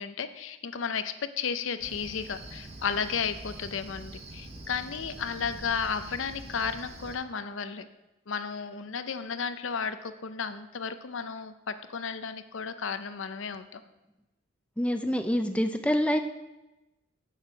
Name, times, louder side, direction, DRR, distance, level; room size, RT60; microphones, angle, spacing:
voice 1, 0.0-7.9 8.3-13.8, left 6 dB, 80° left, 11 dB, 0.6 m, -33 dB
Cricket, 1.8-7.2, right 2 dB, 30° right, 1.3 m, -44 dB
voice 2, 14.8-16.2, equal, 5° left, 6 dB, 0.5 m, -26 dB
7.9 x 7.3 x 5.8 m, 1.0 s
head